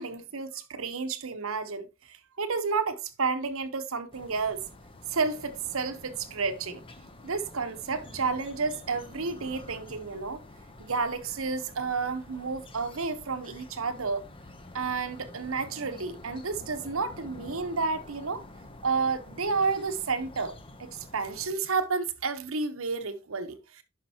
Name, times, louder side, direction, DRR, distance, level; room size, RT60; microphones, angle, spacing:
voice 1, 0.0-4.6 5.1-6.8 7.2-10.4 10.8-14.3 14.7-18.4 18.8-20.5 20.8-23.8, right 4 dB, 80° right, 1.0 m, -31 dB
sound 1, 4.1-21.5, left 2 dB, 25° left, 0.7 m, -48 dB
11.0 x 5.3 x 2.8 m
head